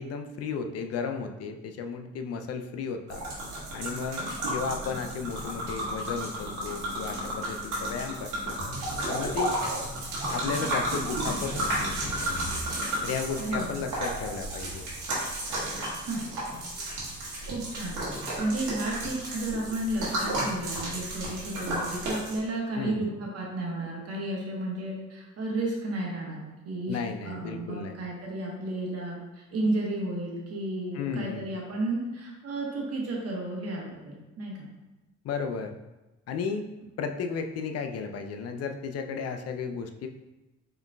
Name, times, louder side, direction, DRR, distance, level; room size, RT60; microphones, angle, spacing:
voice 1, 0.0-3.2 3.7-8.6 9.1-9.6 10.3-12.5 13.0-14.9 22.7-23.1 26.9-28.0 30.9-31.5 35.2-35.8 36.3-36.7 37.0-40.1, left 5 dB, 55° left, 6 dB, 0.5 m, -34 dB
sound 1, 3.1-22.4, right 1 dB, 85° right, 1.4 m, -33 dB
voice 2, 13.4-13.8 16.1-16.3 17.5-34.7, right 2 dB, 55° right, -2 dB, 1.1 m, -33 dB
4.8 x 3.0 x 2.2 m, 1.1 s
cardioid pair, 90°, 30 cm